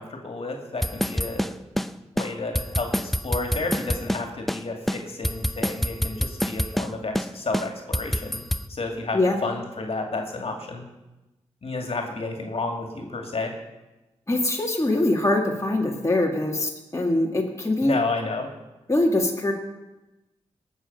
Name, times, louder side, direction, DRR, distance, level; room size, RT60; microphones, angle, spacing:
voice 1, 0.0-1.5 2.1-8.4 8.7-10.8 11.6-13.5 17.8-18.5, left 3 dB, 55° left, 3 dB, 2.3 m, -31 dB
sound 1, 0.8-1.9 2.2-2.3 2.5-4.2 4.5-4.6 4.9-6.9 7.2-7.3 7.5-8.6, equal, ahead, 0.6 m, -26 dB
voice 2, 14.3-18.0 18.9-19.5, left 2 dB, 25° left, 0 dB, 2.0 m, -23 dB
18.5 x 7.0 x 5.5 m, 1.0 s
cardioid pair, 45°, 12 cm